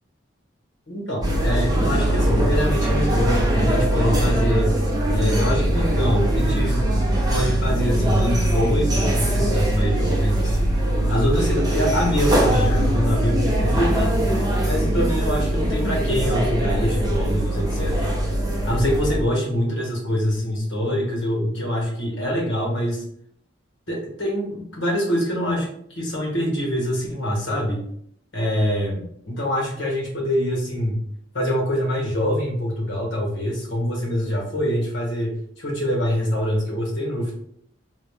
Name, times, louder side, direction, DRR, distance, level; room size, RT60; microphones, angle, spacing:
voice 1, 0.9-4.7 5.1-6.8 7.3-10.7 11.1-14.1 14.6-18.1 18.6-23.0 23.9-25.7 26.0-27.8 28.3-31.0 31.3-37.4, equal, 80° left, -1 dB, 1.4 m, -24 dB
sound 1, 1.2-19.2, right 1 dB, 20° right, 0.7 m, -21 dB
3.9 x 2.3 x 3.3 m, 0.67 s
head